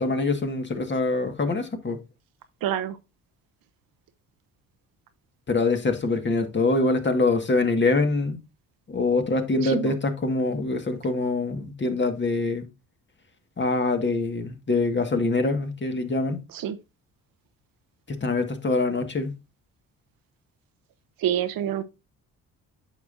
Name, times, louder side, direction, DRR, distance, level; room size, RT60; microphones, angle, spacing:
voice 1, 0.0-2.0 5.5-8.4 8.9-12.7 13.6-16.4 18.1-19.4, left 3 dB, 30° left, 1.7 m, -24 dB
voice 2, 2.6-3.0 9.6-9.9 16.5-16.8 21.2-21.8, right 10 dB, 70° right, 1.0 m, -27 dB
9.1 x 6.0 x 2.6 m
supercardioid pair, 70°, 35 cm